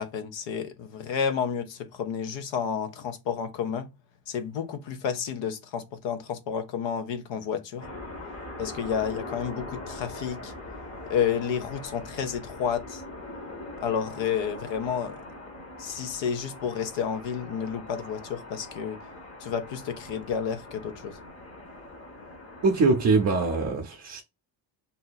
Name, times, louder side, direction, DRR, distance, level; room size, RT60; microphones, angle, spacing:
voice 1, 0.0-3.9 4.3-7.9 8.6-10.5 11.1-13.0 13.8-15.2 15.8-19.0 19.4-21.2, left 7 dB, 75° left, 0.8 m, -30 dB
sound 1, 7.8-23.7, left 2 dB, 30° left, 0.9 m, -42 dB
voice 2, 22.6-24.2, right 3 dB, 35° right, 0.6 m, -23 dB
2.7 x 2.7 x 3.8 m
cardioid pair, 170°, 45 cm